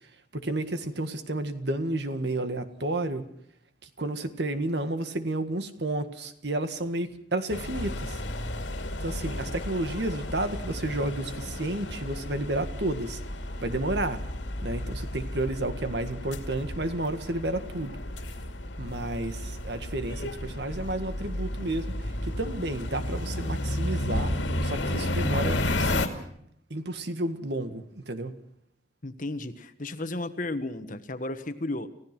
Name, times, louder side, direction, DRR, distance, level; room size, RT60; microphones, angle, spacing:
voice 1, 0.3-3.2 4.0-8.2 9.0-13.2 13.6-14.2 14.6-18.0 18.8-24.3 24.6-26.1 26.7-28.3, right 1 dB, 65° right, 9 dB, 1.8 m, -31 dB
sound 1, 7.5-26.1, left 1 dB, 85° left, 2.5 m, -32 dB
voice 2, 29.0-31.9, left 2 dB, 45° left, 10 dB, 1.4 m, -33 dB
30.0 x 15.5 x 6.0 m, 0.74 s
head